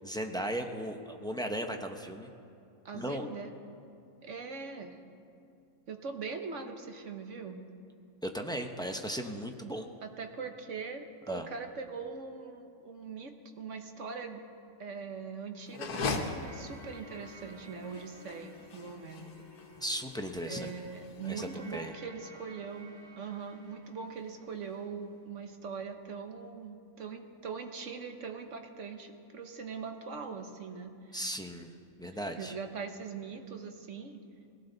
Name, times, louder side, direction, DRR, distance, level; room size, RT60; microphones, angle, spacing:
voice 1, 0.0-2.3 2.9-3.3 8.2-9.9 11.3-11.5 19.8-20.7 21.2-21.9 31.1-31.7 32.0-32.5, equal, 5° left, 4 dB, 0.6 m, -36 dB
voice 2, 2.8-3.5 4.2-5.0 5.9-7.6 10.0-14.4 14.8-19.3 20.5-31.2 32.4-34.2, right 5 dB, 55° right, 5 dB, 1.4 m, -41 dB
sound 1, 15.7-21.8, left 4 dB, 85° left, 1.7 m, -40 dB
sound 2, 16.1-24.9, left 1 dB, 30° left, 3.7 m, -54 dB
20.5 x 17.5 x 4.0 m, 2.5 s
omnidirectional pair, 1.6 m